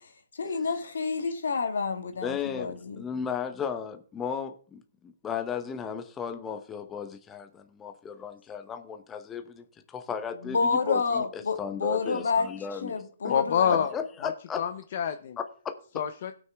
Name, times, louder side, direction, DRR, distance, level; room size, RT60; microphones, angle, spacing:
voice 1, 0.3-3.0 10.5-12.5 12.8-13.9, left 4 dB, 80° left, 1.8 m, -29 dB
voice 2, 2.2-13.3 13.7-14.6 15.4-15.8, left 7 dB, 15° left, 0.8 m, -35 dB
voice 3, 13.3-13.9 14.2-15.4 16.0-16.3, left 8 dB, 50° left, 0.7 m, -27 dB
16.5 x 6.2 x 3.4 m
hypercardioid pair, 150°, 0 cm